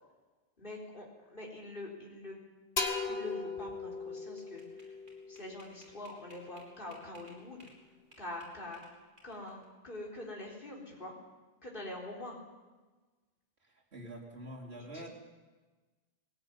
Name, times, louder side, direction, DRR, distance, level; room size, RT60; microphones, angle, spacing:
voice 1, 0.6-2.4 3.0-5.0 5.3-7.7 8.2-8.8 9.2-11.1 11.6-12.4 14.8-15.1, left 1 dB, 55° left, -2 dB, 4.4 m, -45 dB
sound 1, 2.8-6.4, left 4 dB, 75° left, 2.1 m, -38 dB
sound 2, 4.2-7.8 8.1-9.6, equal, 50° right, 6.0 m, -59 dB
voice 2, 13.6-15.1, right 1 dB, 90° right, -1 dB, 4.1 m, -46 dB
22.5 x 18.0 x 9.7 m, 1.3 s
omnidirectional pair, 1.0 m